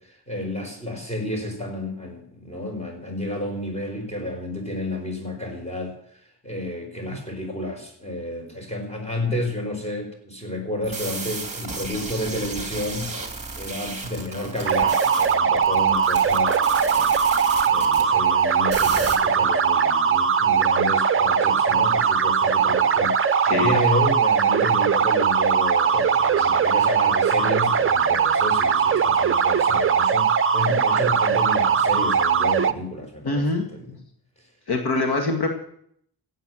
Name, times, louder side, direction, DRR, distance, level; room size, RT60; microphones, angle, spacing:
voice 1, 0.3-5.9 6.4-13.1 13.5-17.2 17.7-33.5 33.7-33.9, left 1 dB, 15° left, 2 dB, 4.6 m, -31 dB
sound 1, 10.8-18.0 18.7-19.2, right 3 dB, 15° right, 2.6 m, -34 dB
sound 2, 14.7-32.7, right 7 dB, 35° right, 0.7 m, -20 dB
voice 2, 33.2-33.7 34.7-35.5, left 2 dB, 75° left, 3 dB, 2.2 m, -24 dB
16.0 x 8.2 x 7.7 m, 0.68 s
wide cardioid pair, 130°, 39 cm